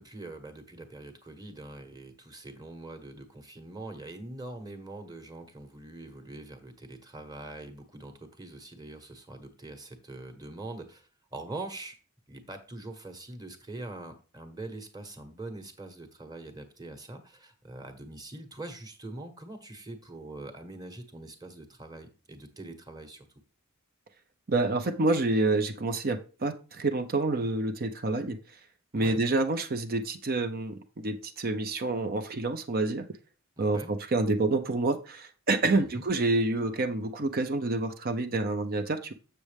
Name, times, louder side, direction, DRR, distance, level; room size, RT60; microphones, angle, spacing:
voice 1, 0.0-12.0 12.3-23.3 28.9-29.2 33.6-33.9 35.8-36.0, right 2 dB, 20° right, 7 dB, 1.2 m, -43 dB
voice 2, 24.5-28.4 28.9-33.1 33.6-39.1, right 2 dB, 45° right, 8 dB, 0.6 m, -28 dB
7.3 x 6.7 x 3.4 m, 0.35 s
head